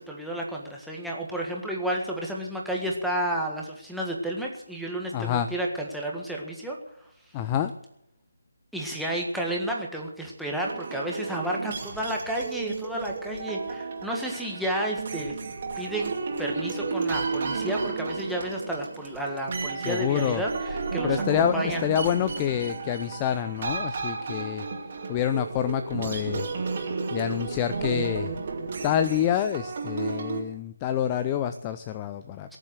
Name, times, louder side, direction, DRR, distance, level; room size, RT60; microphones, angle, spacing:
voice 1, 0.0-6.8 8.7-15.4 15.8-16.1 16.4-21.9 32.5-32.6, right 1 dB, ahead, -3 dB, 1.7 m, -31 dB
voice 2, 5.1-5.5 7.3-7.7 19.8-20.4 21.0-24.7 25.1-26.5 27.1-28.3 28.8-32.5, left 10 dB, 20° left, 10 dB, 0.5 m, -27 dB
sound 1, 10.6-30.4, right 4 dB, 35° right, 2.4 m, -33 dB
18.0 x 7.3 x 8.0 m, 0.76 s
figure-of-eight pair, 160°, 0 cm